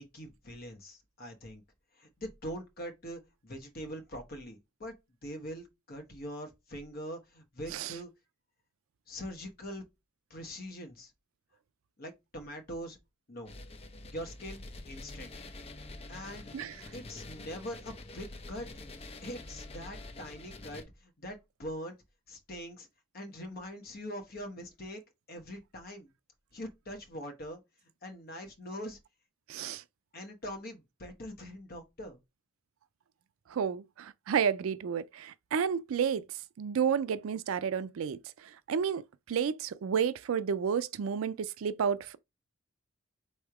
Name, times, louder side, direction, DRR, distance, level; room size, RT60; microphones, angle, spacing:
voice 1, 0.0-1.6 1.9-4.9 5.2-8.1 9.1-9.8 10.3-11.1 12.0-13.0 13.3-13.5 14.1-15.5 16.1-16.5 16.9-18.7 19.2-22.0 22.3-22.9 23.1-25.0 25.3-26.1 26.5-27.6 28.0-29.0 30.1-32.2, equal, 45° left, 1.0 m, -43 dB
sound 1, 13.4-20.8, left 2 dB, 30° left, 0.6 m, -46 dB
voice 2, 29.5-29.8 33.5-36.2 36.6-38.2 38.7-42.1, right 7 dB, 80° right, 0.4 m, -31 dB
3.5 x 3.1 x 4.7 m
head